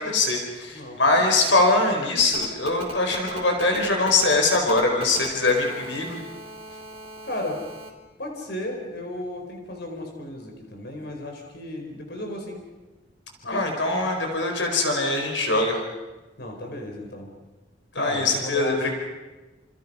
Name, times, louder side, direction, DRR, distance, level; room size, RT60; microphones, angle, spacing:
voice 1, 0.0-6.2 13.4-15.8 17.9-18.9, left 2 dB, 80° left, 2 dB, 4.8 m, -22 dB
Telephone, 2.2-7.9, right 1 dB, 35° right, 3.9 m, -39 dB
voice 2, 7.2-7.6 8.2-12.6 13.5-13.7 16.4-17.3 17.9-18.9, left 1 dB, 60° left, 2 dB, 4.7 m, -34 dB
29.0 x 28.5 x 5.7 m, 1.2 s
head